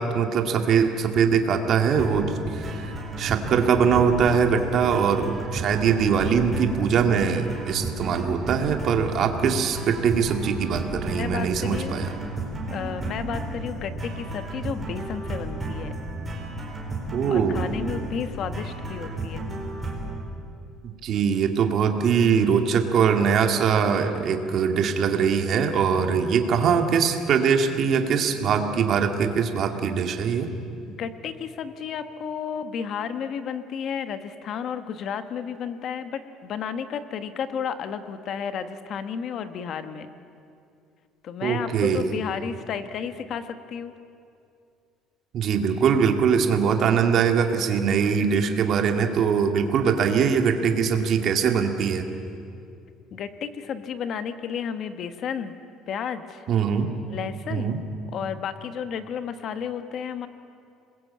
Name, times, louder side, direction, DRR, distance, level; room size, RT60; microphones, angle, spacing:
voice 1, 0.0-12.1 17.1-17.7 20.8-30.5 41.4-42.0 45.3-52.1 56.5-56.9 57.5-57.8, right 6 dB, 45° right, 5 dB, 2.1 m, -22 dB
sound 1, 2.0-20.1, right 2 dB, 15° right, 4.4 m, -33 dB
voice 2, 11.1-12.0 12.7-15.9 17.3-19.5 31.0-40.1 41.2-43.9 53.1-55.5 55.9-56.5 57.1-57.7 58.1-60.3, left 7 dB, 45° left, 10 dB, 1.3 m, -32 dB
27.0 x 21.0 x 8.7 m, 2.5 s
cardioid pair, 160°, 0 cm